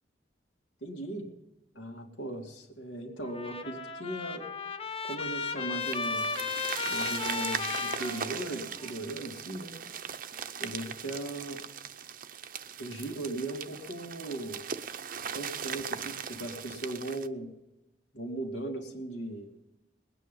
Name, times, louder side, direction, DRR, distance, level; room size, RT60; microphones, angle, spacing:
voice 1, 0.8-1.3 1.7-4.4 5.0-6.3 6.9-9.8 10.6-11.6 12.8-14.6 15.3-17.5 18.1-19.5, right 1 dB, 90° left, 2 dB, 2.6 m, -38 dB
Trumpet, 3.3-8.9, left 4 dB, 30° left, 0.9 m, -35 dB
sound 1, 5.8-17.3, right 7 dB, 50° right, 0.6 m, -39 dB
20.5 x 9.2 x 5.4 m, 0.95 s
head